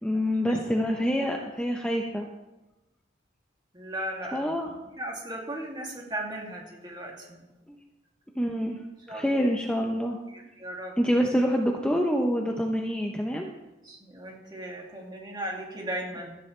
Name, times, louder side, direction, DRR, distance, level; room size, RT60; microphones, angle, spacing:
voice 1, 0.0-2.3 4.3-4.7 8.4-8.8 9.1-10.2 11.0-13.5, equal, 5° left, 1 dB, 0.8 m, -26 dB
voice 2, 3.7-7.4 9.1-9.4 10.3-10.9 13.8-16.4, right 1 dB, 25° right, -1 dB, 2.7 m, -37 dB
17.0 x 13.5 x 3.3 m, 1.0 s
head